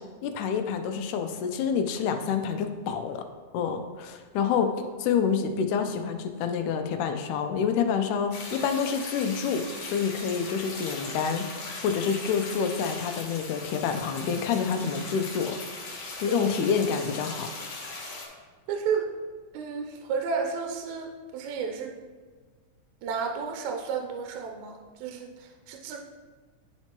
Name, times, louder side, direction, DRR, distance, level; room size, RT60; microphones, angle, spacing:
voice 1, 0.2-3.3 3.5-4.7 5.0-15.6 16.2-17.5, left 6 dB, 80° left, 6 dB, 2.1 m, -28 dB
sound 1, 8.3-18.3, left 3 dB, 60° left, 2.0 m, -39 dB
voice 2, 18.7-19.1 19.5-21.9 23.0-26.0, right 5 dB, 80° right, 3 dB, 1.9 m, -32 dB
10.5 x 4.5 x 2.9 m, 1.4 s
omnidirectional pair, 3.6 m